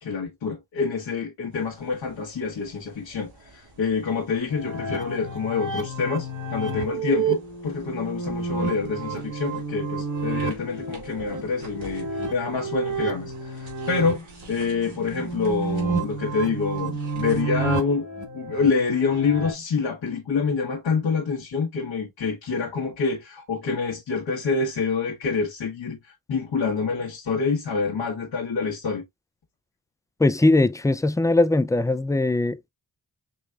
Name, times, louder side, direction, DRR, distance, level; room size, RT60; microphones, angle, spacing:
voice 1, 0.0-18.1 18.3-29.0, left 5 dB, 70° left, 1.3 m, -27 dB
sound 1, 1.5-17.4, right 2 dB, 90° right, 2.1 m, -49 dB
sound 2, 4.5-19.5, right 4 dB, 40° right, 1.3 m, -30 dB
voice 2, 30.2-32.7, left 2 dB, 10° left, 0.3 m, -20 dB
5.2 x 3.2 x 2.4 m
cardioid pair, 40°, 45 cm